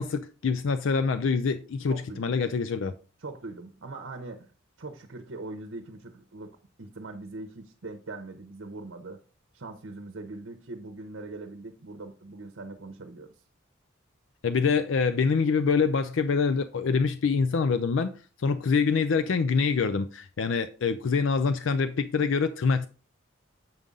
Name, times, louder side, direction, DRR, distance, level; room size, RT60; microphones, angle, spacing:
voice 1, 0.0-2.9 14.4-18.2 18.4-22.9, left 5 dB, 70° left, 0.4 m, -25 dB
voice 2, 1.9-2.3 3.2-4.5 4.8-9.2 9.5-13.3, right 2 dB, 70° right, 0.8 m, -41 dB
7.7 x 5.4 x 3.7 m
head